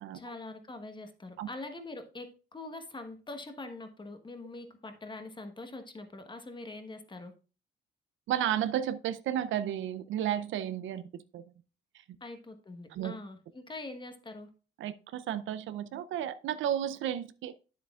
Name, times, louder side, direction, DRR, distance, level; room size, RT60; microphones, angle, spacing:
voice 1, 0.1-7.3 12.2-14.5, left 2 dB, 25° left, 1.2 m, -44 dB
voice 2, 8.3-11.1 11.3-11.4 12.9-13.2 14.8-17.5, right 10 dB, 75° right, 0.5 m, -32 dB
9.4 x 7.6 x 2.4 m
cardioid pair, 90°, 20 cm